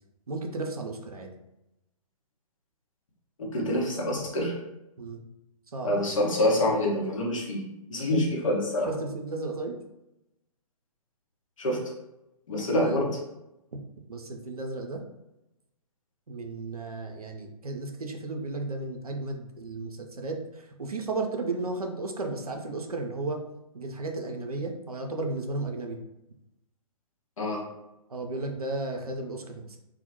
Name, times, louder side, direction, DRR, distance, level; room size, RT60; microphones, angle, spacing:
voice 1, 0.3-1.3 5.0-5.2 5.7-6.0 8.9-9.8 12.7-13.0 13.7-13.8 14.1-15.0 16.3-23.4 23.7-26.0 28.1-29.8, right 3 dB, 90° right, 3 dB, 0.4 m, -34 dB
voice 2, 3.4-4.6 5.8-8.9 11.6-11.8 12.5-13.1 27.4-27.7, left 1 dB, 60° left, -2 dB, 0.8 m, -26 dB
2.1 x 2.0 x 2.8 m, 0.92 s
figure-of-eight pair, 125°, 18 cm